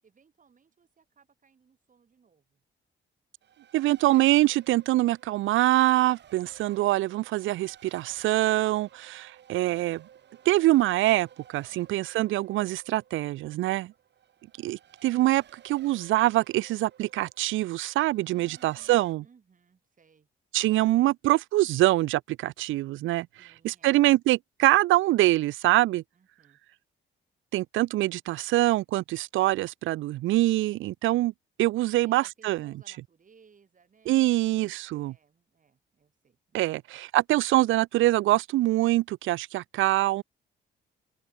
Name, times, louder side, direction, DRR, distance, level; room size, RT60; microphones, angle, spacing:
voice 1, 0.0-2.6 11.7-12.0 14.7-15.0 18.3-18.9 19.2-20.3 20.8-20.9 23.4-24.0 26.1-26.6 31.1-31.2 31.9-34.4 35.0-36.8, right 6 dB, 40° right, 7.5 m, -61 dB
Race car auto racing, 3.4-19.1, right 9 dB, 60° right, 2.7 m, -56 dB
voice 2, 3.7-10.0 10.5-13.9 14.6-19.2 20.5-23.3 23.6-26.0 27.5-31.3 31.6-32.7 34.1-35.1 36.5-40.2, right 16 dB, 80° right, 0.5 m, -24 dB
open air
cardioid pair, 90°, 20 cm